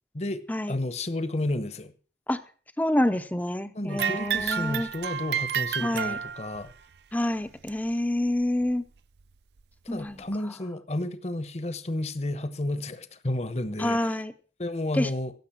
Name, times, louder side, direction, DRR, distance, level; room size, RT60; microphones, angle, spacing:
voice 1, 0.7-1.9 3.7-6.7 9.9-14.2 14.6-15.3, left 1 dB, 40° left, 1.0 m, -31 dB
voice 2, 2.8-4.9 5.8-6.2 7.1-8.8 9.9-10.2 13.8-14.3 14.9-15.1, left 1 dB, 10° left, 0.6 m, -27 dB
sound 1, 3.9-6.7 7.7-7.8 8.6-8.7 9.6-9.7, right 8 dB, 65° right, 0.5 m, -30 dB
16.0 x 7.1 x 5.8 m
head